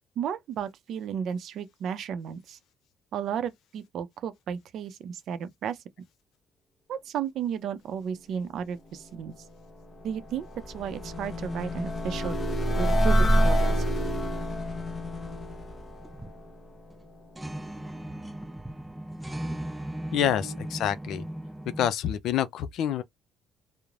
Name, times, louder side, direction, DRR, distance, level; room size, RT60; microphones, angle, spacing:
voice 1, 0.2-2.6 3.1-5.8 6.9-9.3 10.0-10.5 10.7-12.4 12.8-13.8 20.4-20.6, right 8 dB, 60° right, 0.5 m, -33 dB
sound 1, 9.7-16.9, equal, 30° left, 0.8 m, -27 dB
sound 2, 16.0-16.5 16.9-17.0 17.4-21.9, right 1 dB, 10° right, 0.4 m, -37 dB
voice 2, 20.1-21.2 21.8-23.0, left 10 dB, 70° left, 0.4 m, -27 dB
3.1 x 2.0 x 2.4 m
cardioid pair, 120°, 0 cm